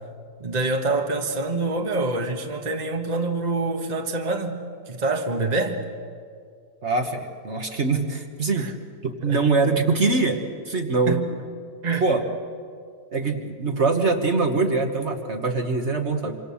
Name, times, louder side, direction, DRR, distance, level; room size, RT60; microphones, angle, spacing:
voice 1, 0.4-5.8 8.6-8.7 9.2-9.4 11.0-11.3 11.8-12.1, right 3 dB, 30° right, 1.5 m, -26 dB
voice 2, 6.8-8.7 9.0-11.2 12.0-12.2 13.1-16.4, right 3 dB, 45° right, 1.7 m, -23 dB
26.5 x 25.5 x 7.1 m
omnidirectional pair, 1.6 m